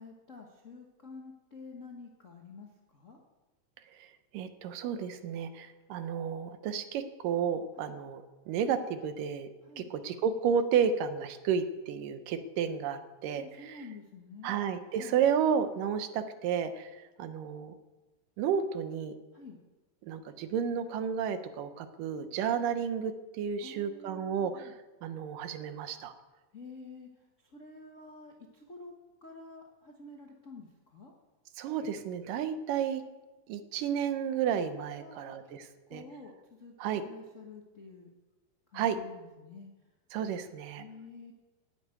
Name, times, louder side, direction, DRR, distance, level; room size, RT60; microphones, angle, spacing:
voice 1, 0.0-3.2 7.8-7.9 9.7-9.9 13.4-14.6 14.9-15.2 19.3-19.6 23.6-24.7 26.5-27.1 27.4-28.9 29.2-31.1 35.0-35.6 35.9-38.1 38.7-39.7 40.8-41.3, left 3 dB, 60° left, 0 dB, 0.8 m, -49 dB
voice 2, 4.3-9.5 9.8-13.8 14.4-17.7 18.4-19.1 20.0-24.7 25.0-26.1 31.6-33.0 33.5-36.0 36.8-37.0 38.7-39.0 40.1-40.8, right 7 dB, 85° right, 10 dB, 2.6 m, -32 dB
10.0 x 9.8 x 8.9 m, 1.2 s
omnidirectional pair, 3.8 m